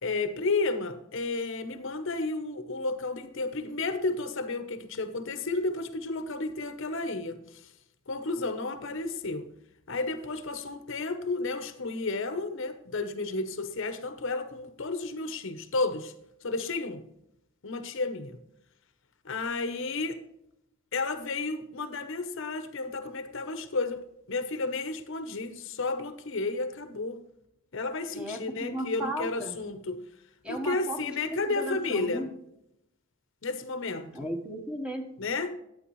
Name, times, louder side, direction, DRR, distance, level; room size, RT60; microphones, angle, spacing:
voice 1, 0.0-7.7 8.1-9.5 9.9-16.1 16.4-17.0 17.6-18.4 19.2-20.2 20.9-24.0 24.3-27.2 27.7-30.0 30.5-32.2 33.4-34.3 35.2-35.6, left 3 dB, 60° left, 9 dB, 0.8 m, -32 dB
voice 2, 28.1-29.6 30.4-32.3 34.1-35.0, equal, 5° right, 2 dB, 1.1 m, -35 dB
11.5 x 8.9 x 3.1 m, 0.81 s
head